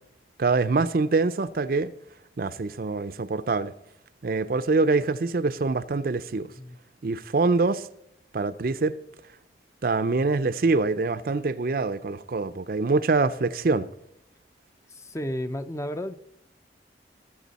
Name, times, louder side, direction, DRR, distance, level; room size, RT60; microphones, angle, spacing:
voice 1, 0.4-1.9 2.4-3.7 4.2-6.5 7.0-7.9 8.3-8.9 9.8-13.9, right 3 dB, 55° right, 0.5 m, -24 dB
voice 2, 14.9-16.1, equal, 15° left, 0.5 m, -32 dB
19.5 x 7.5 x 4.1 m
head